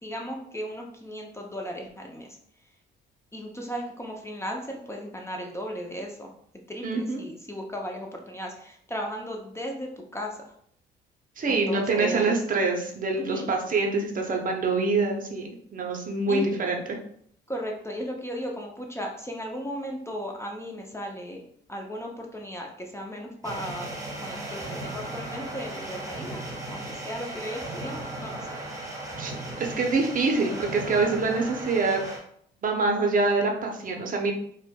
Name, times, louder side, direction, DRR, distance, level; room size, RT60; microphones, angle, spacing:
voice 1, 0.0-2.4 3.3-6.3 6.7-10.5 11.5-12.4 13.2-13.5 16.3-16.5 17.5-21.4 21.7-23.9 24.2-26.4 26.7-28.6, equal, 15° left, 0 dB, 0.5 m, -36 dB
voice 2, 6.8-7.2 11.4-15.4 15.7-16.8 29.2-29.3 29.6-32.0 32.6-34.3, right 3 dB, 45° right, 2 dB, 0.6 m, -25 dB
sound 1, 23.4-32.2, right 1 dB, 15° right, 1.4 m, -36 dB
4.2 x 2.1 x 2.2 m, 0.66 s
cardioid pair, 90°, 20 cm